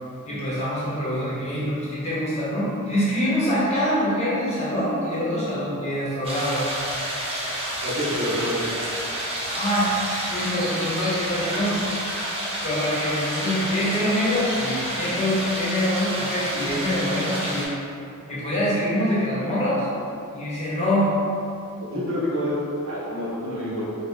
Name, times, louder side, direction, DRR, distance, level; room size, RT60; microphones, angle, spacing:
voice 1, 0.3-6.6 9.5-9.9 10.3-11.8 12.6-17.6 18.3-19.9 20.3-21.1, equal, 30° left, -9 dB, 1.1 m, -25 dB
sound 1, 6.2-17.7, right 1 dB, 25° right, 0.7 m, -29 dB
voice 2, 7.8-8.9 21.9-22.5 22.8-23.9, equal, 65° right, -7 dB, 1.1 m, -27 dB
4.4 x 2.3 x 3.6 m, 2.6 s
head